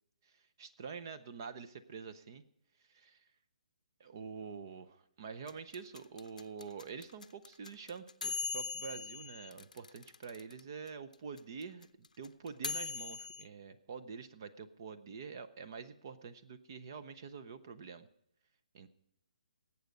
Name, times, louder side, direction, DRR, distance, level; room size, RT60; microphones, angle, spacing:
voice 1, 0.2-2.4 2.9-3.3 4.0-18.1 18.7-18.9, right 5 dB, 30° right, 11 dB, 0.6 m, -46 dB
sound 1, 5.5-10.6 10.9-11.0 11.1-13.4, left 5 dB, 80° left, 0.7 m, -40 dB
18.5 x 8.2 x 5.2 m, 0.78 s
hypercardioid pair, 175°, 4 cm